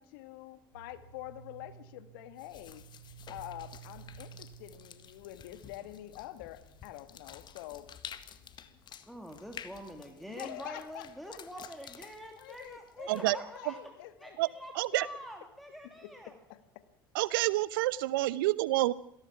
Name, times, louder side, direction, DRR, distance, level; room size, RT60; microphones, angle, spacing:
voice 1, 0.0-2.8 3.3-7.9 10.3-11.4 12.4-14.4 16.5-16.8, left 15 dB, 65° left, 11 dB, 1.8 m, -46 dB
sound 1, 0.7-12.0, right 8 dB, 90° right, 4.6 m, -55 dB
sound 2, 2.4-13.6, left 9 dB, 40° left, 1.8 m, -51 dB
voice 2, 9.1-13.8 14.2-16.4, equal, ahead, 3 dB, 3.2 m, -46 dB
voice 3, 14.8-15.1 17.1-18.9, right 18 dB, 70° right, 19 dB, 1.0 m, -28 dB
27.0 x 17.5 x 6.1 m, 0.71 s
figure-of-eight pair, 70°, 12 cm